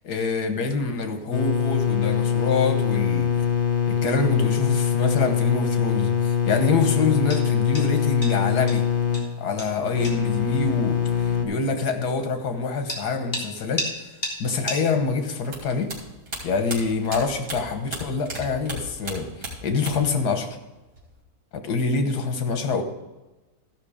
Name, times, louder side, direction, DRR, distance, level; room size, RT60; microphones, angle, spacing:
voice 1, 0.0-3.5 3.9-8.9 9.4-14.0 14.4-15.9 16.4-20.6 21.5-22.8, left 4 dB, 85° left, 6 dB, 1.7 m, -26 dB
sound 1, 1.0-19.3, left 1 dB, 25° left, 2.1 m, -40 dB
sound 2, 1.3-11.4, left 8 dB, 50° left, 1.5 m, -23 dB
sound 3, 15.4-18.4 18.6-20.2 20.4-21.2, right 2 dB, 75° right, 3.4 m, -35 dB
14.0 x 5.9 x 5.0 m, 1.1 s
omnidirectional pair, 1.6 m